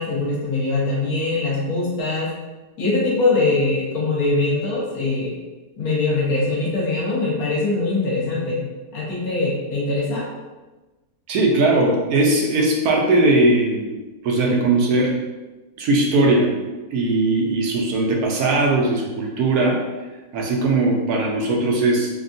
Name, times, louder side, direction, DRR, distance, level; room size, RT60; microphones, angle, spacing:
voice 1, 0.0-2.3 2.8-5.3 5.8-8.7 8.9-10.2, left 3 dB, 65° left, -5 dB, 1.3 m, -22 dB
voice 2, 11.3-14.0 14.2-15.2 15.8-16.6 16.9-19.8 20.3-22.1, right 2 dB, 75° right, -1 dB, 1.0 m, -19 dB
3.4 x 2.2 x 2.5 m, 1.2 s
omnidirectional pair, 1.7 m